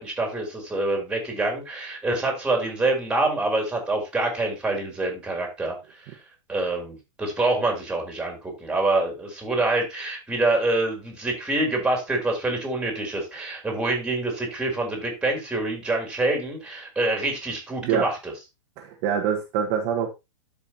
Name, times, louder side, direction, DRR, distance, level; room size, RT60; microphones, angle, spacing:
voice 1, 0.0-5.8 6.5-18.3, right 2 dB, 5° right, 2 dB, 3.4 m, -26 dB
voice 2, 18.8-20.1, right 8 dB, 40° right, 0 dB, 1.6 m, -25 dB
13.0 x 5.5 x 2.9 m, 0.24 s
hypercardioid pair, 125°, 16 cm